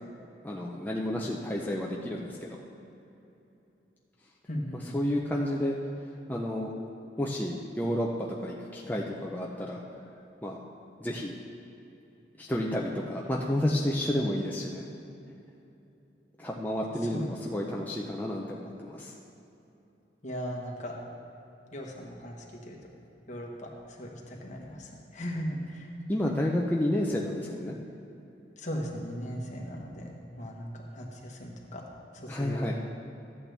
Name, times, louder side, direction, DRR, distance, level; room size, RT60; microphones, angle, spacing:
voice 1, 0.4-2.6 4.9-5.8 6.3-6.7 7.2-9.8 10.4-10.6 11.0-11.4 12.4-14.8 16.4-19.1 26.1-27.8 32.3-32.7, left 1 dB, 10° left, -3 dB, 0.6 m, -30 dB
voice 2, 4.5-5.0 17.0-17.7 20.2-21.0 21.7-22.8 23.3-25.9 28.6-31.8 32.1-32.7, equal, 45° left, 0 dB, 1.3 m, -38 dB
13.5 x 8.5 x 3.4 m, 2.9 s
head